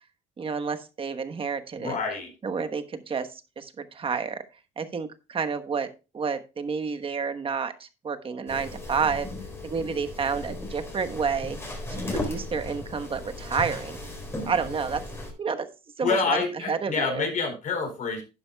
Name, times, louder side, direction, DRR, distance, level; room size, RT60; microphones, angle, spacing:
voice 1, 0.4-2.0 2.4-4.4 4.8-9.3 9.6-11.6 12.1-14.0 14.5-15.0 15.4-15.7 16.0-17.3, right 5 dB, 30° right, 9 dB, 1.2 m, -30 dB
voice 2, 1.8-2.3 16.0-18.2, left 4 dB, 50° left, 3 dB, 4.5 m, -27 dB
sound 1, 8.5-15.3, left 1 dB, 15° left, 3.9 m, -36 dB
12.0 x 9.6 x 2.3 m, 0.29 s
cardioid pair, 110°, 17 cm